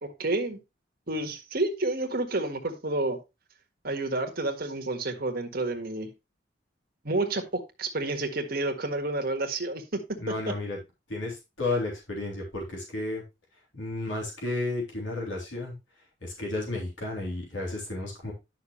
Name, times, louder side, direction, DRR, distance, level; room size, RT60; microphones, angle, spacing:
voice 1, 0.0-0.6 1.1-3.2 3.8-6.1 7.0-10.2, right 2 dB, 50° right, 4 dB, 1.6 m, -30 dB
voice 2, 10.2-10.8 11.1-13.2 13.7-18.3, left 2 dB, 80° left, -2 dB, 3.5 m, -33 dB
10.0 x 6.3 x 3.1 m, 0.25 s
head